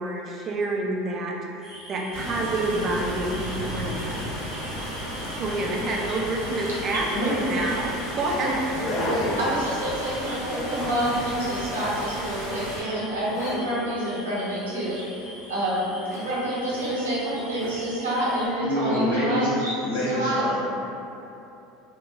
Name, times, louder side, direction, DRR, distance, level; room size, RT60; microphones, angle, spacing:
voice 1, 0.0-4.2 5.4-8.6, right 2 dB, 40° right, -1 dB, 0.4 m, -28 dB
sound 1, 1.6-18.5, equal, 15° left, 1.1 m, -44 dB
sound 2, 2.1-12.8, equal, 85° left, 1.1 m, -34 dB
voice 2, 6.9-7.5 8.3-8.5 9.4-20.6, right 1 dB, 85° right, -8 dB, 0.8 m, -28 dB
voice 3, 8.7-9.4 18.6-19.6 19.8-20.5, left 1 dB, 65° left, -7 dB, 0.8 m, -26 dB
sound 3, 8.8-9.5 9.8-10.2 10.5-11.0 11.6-12.0 13.2-13.7 16.0-17.0 17.5-17.8, left 2 dB, 40° left, 0.5 m, -35 dB
3.0 x 2.1 x 2.4 m, 2.8 s
hypercardioid pair, 75°, 0 cm